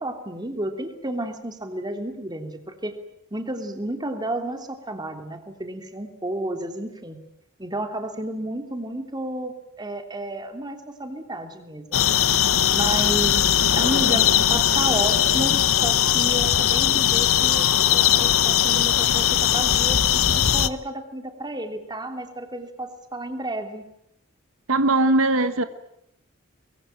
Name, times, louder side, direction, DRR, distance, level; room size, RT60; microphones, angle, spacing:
voice 1, 0.0-2.9 3.3-7.2 7.6-12.1 12.7-13.4 13.7-23.8, right 1 dB, 20° right, 6 dB, 3.1 m, -32 dB
sound 1, 11.9-20.7, left 10 dB, 85° left, 1.0 m, -20 dB
voice 2, 24.7-25.6, right 2 dB, 80° right, 10 dB, 1.4 m, -19 dB
23.5 x 23.0 x 9.1 m, 0.75 s
head